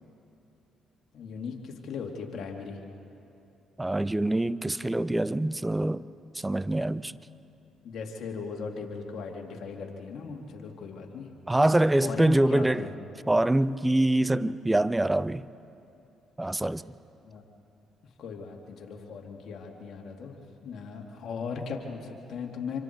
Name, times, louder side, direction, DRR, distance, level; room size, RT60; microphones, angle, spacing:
voice 1, 1.1-2.8 7.8-11.3 12.0-13.0 17.2-17.4 18.2-22.8, left 5 dB, 60° left, 2.7 m, -38 dB
voice 2, 3.8-6.0 6.4-7.1 11.5-12.8 13.3-15.5 16.4-16.8, right 1 dB, 15° right, 0.6 m, -24 dB
27.0 x 24.5 x 4.7 m
supercardioid pair, 60°, 0 cm